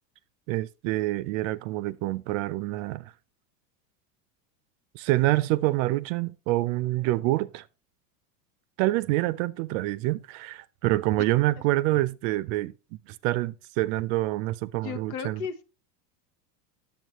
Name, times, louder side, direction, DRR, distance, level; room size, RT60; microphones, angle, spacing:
voice 1, 0.5-3.1 4.9-7.6 8.8-12.7 13.1-15.4, right 17 dB, 55° right, 0.6 m, -26 dB
voice 2, 14.8-15.6, left 7 dB, 65° left, 1.2 m, -34 dB
9.2 x 7.1 x 3.0 m
supercardioid pair, 125°, 47 cm